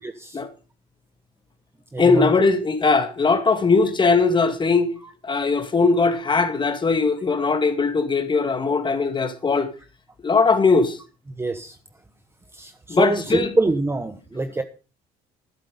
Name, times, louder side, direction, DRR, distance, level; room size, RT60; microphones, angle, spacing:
voice 1, 0.0-0.4 1.9-2.3 11.3-11.8 12.5-14.6, right 2 dB, 15° right, 1.2 m, -25 dB
voice 2, 2.0-4.9 5.2-9.7 10.2-11.0 12.9-13.5, left 4 dB, 30° left, 2.1 m, -20 dB
12.0 x 10.5 x 5.2 m
supercardioid pair, 85°, 16 cm